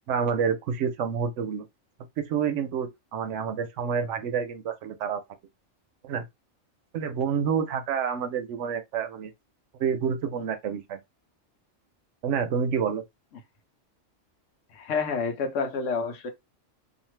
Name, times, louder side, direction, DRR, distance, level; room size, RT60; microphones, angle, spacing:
voice 1, 0.1-1.6 2.2-5.2 6.0-6.3 6.9-9.3 9.8-11.0 12.2-13.0, right 7 dB, 80° right, 0.9 m, -28 dB
voice 2, 14.7-16.3, left 5 dB, 85° left, 1.1 m, -28 dB
2.5 x 2.4 x 3.1 m
omnidirectional pair, 1.3 m